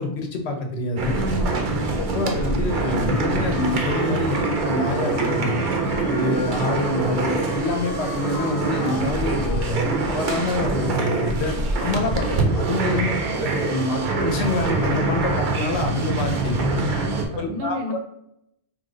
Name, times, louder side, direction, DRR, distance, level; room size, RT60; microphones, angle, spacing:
voice 1, 0.0-1.2 2.0-5.6 6.1-16.6 17.4-18.0, left 2 dB, 75° left, 4 dB, 0.9 m, -26 dB
sound 1, 1.0-17.2, right 3 dB, 60° right, 0.6 m, -24 dB
voice 2, 1.1-1.6 12.6-12.9 16.6-18.0, equal, 80° right, 4 dB, 0.9 m, -32 dB
sound 2, 2.3-9.7, left 4 dB, 50° left, 0.4 m, -39 dB
3.1 x 2.0 x 3.6 m, 0.77 s
omnidirectional pair, 1.1 m